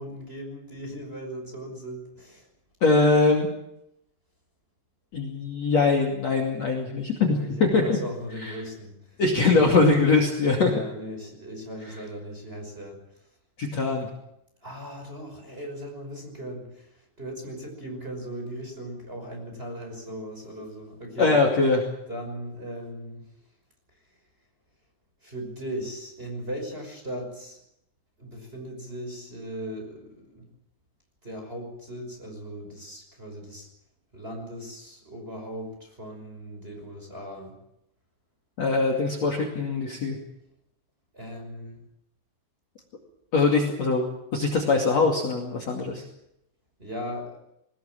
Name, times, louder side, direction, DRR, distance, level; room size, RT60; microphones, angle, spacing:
voice 1, 0.0-2.5 7.3-10.1 10.6-13.0 14.6-21.4 22.1-23.3 25.2-27.6 28.2-30.5 31.2-33.7 34.1-37.5 41.1-41.8 46.8-47.4, equal, 10° right, 2 dB, 5.5 m, -38 dB
voice 2, 2.8-3.5 5.1-7.8 8.4-8.5 9.2-10.7 13.6-14.1 21.2-21.8 38.6-40.2 43.3-44.1 44.3-46.0, left 3 dB, 45° left, 4 dB, 3.2 m, -22 dB
21.0 x 20.0 x 7.6 m, 0.80 s
omnidirectional pair, 5.1 m